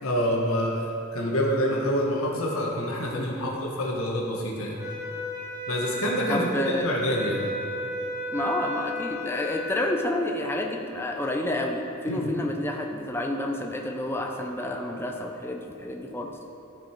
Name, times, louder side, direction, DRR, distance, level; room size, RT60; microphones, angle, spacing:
voice 1, 0.0-4.8 5.7-7.4 12.0-12.3, equal, 85° left, -2 dB, 1.6 m, -27 dB
sound 1, 4.8-9.9, equal, 15° right, 1.2 m, -34 dB
voice 2, 6.3-6.9 8.3-16.3, left 1 dB, 10° left, 1 dB, 0.6 m, -29 dB
14.0 x 5.4 x 4.6 m, 2.9 s
head